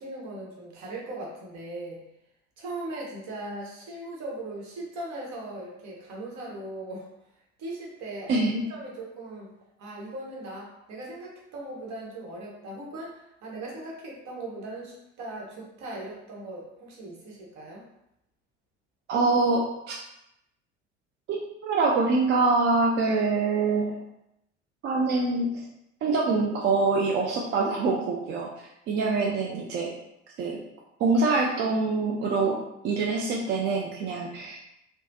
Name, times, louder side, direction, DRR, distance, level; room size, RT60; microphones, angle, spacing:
voice 1, 0.0-2.0 2.6-7.1 7.6-8.4 8.7-9.5 9.8-17.8 29.0-29.2, right 2 dB, 50° right, -3 dB, 1.0 m, -39 dB
voice 2, 8.3-8.6 19.1-20.0 21.3-24.0 24.8-25.7 26.0-28.5 28.9-29.9 30.4-30.6 31.0-32.6 32.8-34.6, right 3 dB, 30° right, -1 dB, 0.4 m, -25 dB
3.1 x 2.0 x 2.6 m, 0.83 s
figure-of-eight pair, 60°, 37 cm